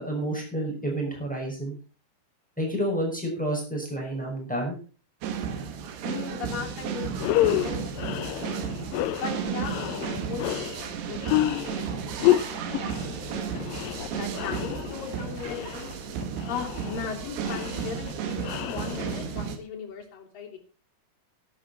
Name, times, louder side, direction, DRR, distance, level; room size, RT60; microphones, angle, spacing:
voice 1, 0.0-1.8 2.6-4.8, right 1 dB, ahead, 0 dB, 5.9 m, -29 dB
sound 1, 5.2-19.6, right 7 dB, 80° right, 3.8 m, -33 dB
voice 2, 6.0-8.4 9.2-13.6 14.0-15.9 16.5-20.6, left 7 dB, 55° left, 0 dB, 4.7 m, -38 dB
sound 2, 6.6-6.8 7.1-19.5, left 14 dB, 80° left, 2.0 m, -30 dB
12.5 x 12.5 x 4.3 m, 0.37 s
omnidirectional pair, 4.7 m